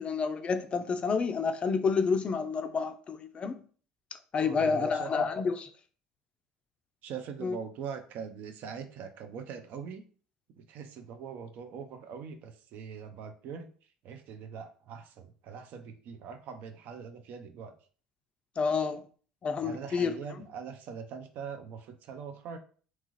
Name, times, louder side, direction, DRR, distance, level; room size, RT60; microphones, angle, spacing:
voice 1, 0.0-3.6 4.3-5.6 7.4-7.6 18.6-19.0 19.4-20.1, left 5 dB, 35° left, 0.3 m, -29 dB
voice 2, 4.4-5.3 7.0-10.0 10.6-17.7 19.6-22.6, right 6 dB, 60° right, 0.4 m, -42 dB
2.8 x 2.4 x 2.9 m
hypercardioid pair, 65°, 3 cm